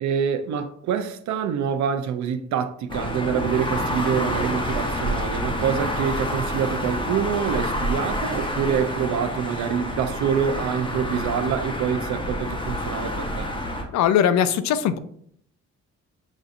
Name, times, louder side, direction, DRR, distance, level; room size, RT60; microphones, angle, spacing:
voice 1, 0.0-13.5, right 8 dB, 70° right, 0.5 m, -26 dB
sound 1, 2.9-13.8, equal, 15° left, 0.9 m, -28 dB
voice 2, 13.9-15.0, left 9 dB, 65° left, 0.4 m, -20 dB
6.1 x 2.6 x 2.5 m
cardioid pair, 90°, 30 cm